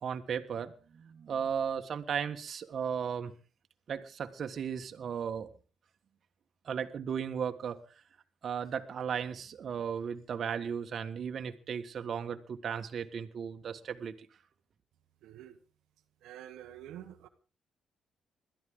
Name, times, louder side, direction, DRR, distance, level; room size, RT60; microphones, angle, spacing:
voice 1, 0.0-3.3 3.9-5.5 6.6-7.8 8.4-14.1, right 7 dB, 55° right, 7 dB, 1.6 m, -35 dB
voice 2, 15.2-15.6 16.2-17.3, right 11 dB, 85° right, 6 dB, 1.2 m, -48 dB
21.5 x 13.0 x 3.8 m, 0.35 s
cardioid pair, 90°, 0 cm